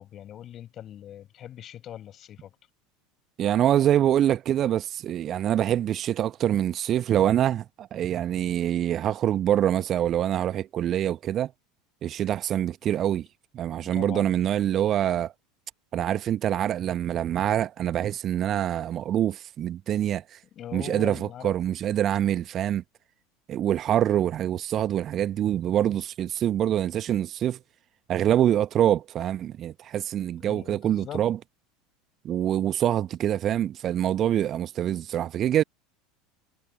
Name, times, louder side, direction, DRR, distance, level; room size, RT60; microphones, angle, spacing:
voice 1, 0.0-2.5 13.9-14.3 20.5-21.6 30.4-31.2, left 11 dB, 35° left, 7.2 m, -41 dB
voice 2, 3.4-11.5 12.0-13.3 13.5-15.3 15.9-20.4 20.7-22.8 23.5-27.6 28.1-31.4 32.2-35.6, right 11 dB, 35° right, 1.2 m, -25 dB
figure-of-eight pair, 75°, 0 cm